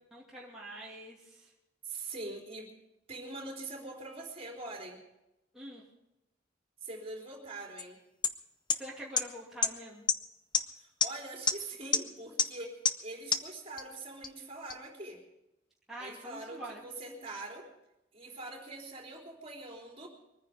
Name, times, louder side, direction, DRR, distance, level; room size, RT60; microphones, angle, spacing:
voice 1, 0.1-1.5 5.5-5.8 8.7-10.1 15.9-16.8, right 1 dB, ahead, -6 dB, 2.6 m, -45 dB
voice 2, 1.8-2.7 3.1-5.0 6.8-8.0 10.8-15.2 16.0-17.7 18.1-20.1, right 2 dB, 30° right, -1 dB, 3.7 m, -43 dB
sound 1, 7.8-7.9 8.2-8.3 8.7-8.8 9.2-9.3 9.6-9.7 10.1-10.2 10.5-10.6 11.0-11.1 11.5-11.6 11.9-12.0 12.4-12.5 12.8-12.9 13.3-13.4 13.8-13.9 14.2-14.3 14.7-14.8, left 6 dB, 25° left, 0.7 m, -25 dB
23.0 x 9.8 x 5.2 m, 0.91 s
head